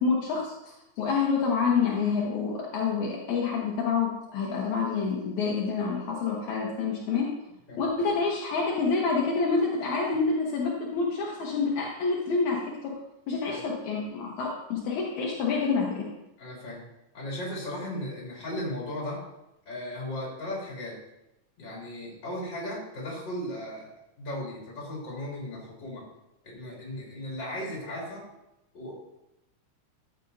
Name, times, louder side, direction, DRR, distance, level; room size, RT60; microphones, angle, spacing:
voice 1, 0.0-7.3 7.8-12.9 13.3-16.0, left 4 dB, 70° left, -4 dB, 2.5 m, -27 dB
voice 2, 16.4-16.8 17.1-19.3 19.7-21.0 21.6-26.1 26.4-28.3 28.7-28.9, left 1 dB, 35° left, -4 dB, 3.5 m, -36 dB
13.5 x 8.2 x 2.7 m, 0.90 s
omnidirectional pair, 3.5 m